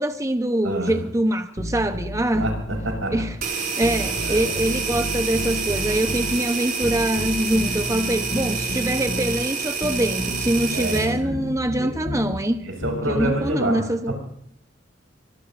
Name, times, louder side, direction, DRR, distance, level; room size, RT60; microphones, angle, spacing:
voice 1, 0.0-2.5 3.1-12.6 13.1-14.1, right 1 dB, 15° right, 8 dB, 0.8 m, -24 dB
voice 2, 0.6-1.0 2.3-3.2 4.2-4.5 10.7-11.9 12.6-14.2, right 1 dB, 90° right, 2 dB, 6.9 m, -28 dB
sound 1, 1.6-3.4 3.8-6.4 6.8-9.4 9.8-12.3 12.8-13.5, equal, 40° left, 1.7 m, -31 dB
sound 2, 3.4-11.1, right 5 dB, 50° right, 5.3 m, -28 dB
25.5 x 21.5 x 2.6 m, 0.69 s
head